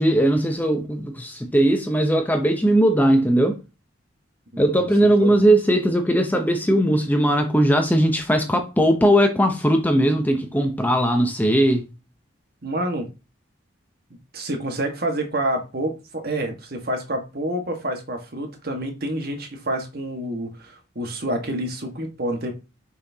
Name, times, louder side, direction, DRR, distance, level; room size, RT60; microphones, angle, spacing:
voice 1, 0.0-3.6 4.6-11.9, right 1 dB, 10° left, 0.8 m, -19 dB
voice 2, 4.5-4.9 5.3-5.4 12.6-13.1 14.1-22.5, right 1 dB, 50° right, 1.6 m, -28 dB
6.7 x 5.7 x 2.8 m
head